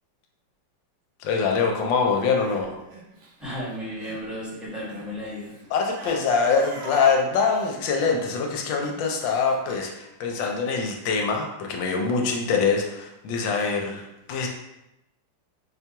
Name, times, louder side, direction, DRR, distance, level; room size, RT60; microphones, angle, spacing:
voice 1, 1.2-2.7 5.7-14.5, left 5 dB, 80° left, 1 dB, 1.3 m, -24 dB
Crying sobbing, 2.1-4.3 4.5-9.6, right 1 dB, 70° right, 1.4 m, -44 dB
voice 2, 3.4-5.5, equal, ahead, -9 dB, 0.9 m, -34 dB
4.3 x 2.2 x 2.8 m, 0.90 s
omnidirectional pair, 2.1 m